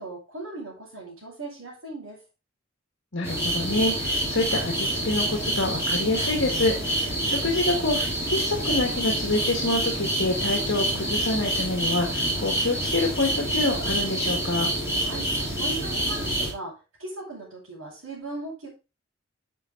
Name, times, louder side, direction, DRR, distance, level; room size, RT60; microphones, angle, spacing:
voice 1, 0.0-2.2 15.0-15.3 15.6-18.7, right 2 dB, 75° right, -8 dB, 5.6 m, -38 dB
voice 2, 3.1-14.7, left 2 dB, 60° left, 1 dB, 1.9 m, -27 dB
sound 1, 3.2-16.5, right 1 dB, 15° right, 3.9 m, -27 dB
10.5 x 6.7 x 4.0 m, 0.29 s
head